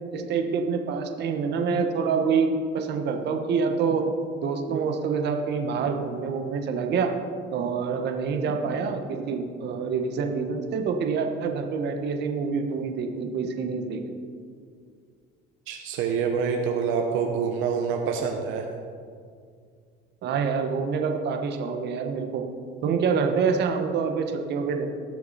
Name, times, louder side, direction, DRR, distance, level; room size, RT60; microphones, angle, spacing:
voice 1, 0.1-4.0 4.4-7.1 7.5-14.0 20.2-22.4 22.8-24.9, right 5 dB, 60° right, 5 dB, 1.3 m, -26 dB
voice 2, 15.7-18.7, right 6 dB, 80° right, 3 dB, 1.1 m, -26 dB
19.5 x 6.6 x 4.2 m, 2.2 s
cardioid pair, 115°, 20 cm